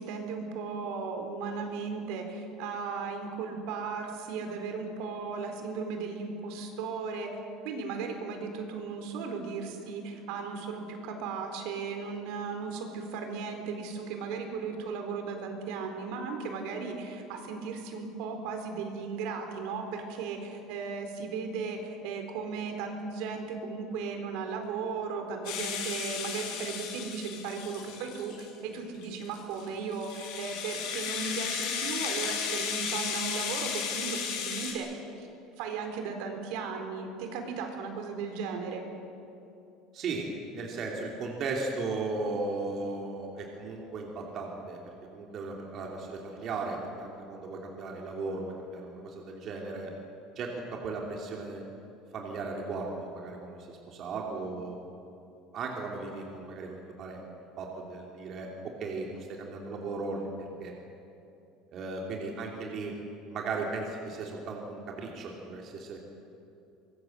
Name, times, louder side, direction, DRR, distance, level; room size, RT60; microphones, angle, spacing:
voice 1, 0.0-7.3 7.6-35.3 35.6-38.8, right 5 dB, 70° right, 4 dB, 4.2 m, -36 dB
Rattle (instrument), 25.5-28.5 29.0-34.7, left 7 dB, 70° left, 6.2 m, -34 dB
voice 2, 39.9-44.8 45.1-49.9 50.3-51.6 52.1-54.8 55.5-57.3 57.6-58.5 58.8-60.3 60.6-60.7 61.7-62.9 63.3-66.0, right 3 dB, 40° right, 0 dB, 3.1 m, -36 dB
24.5 x 21.0 x 8.0 m, 2.8 s
cardioid pair, 155°, 0 cm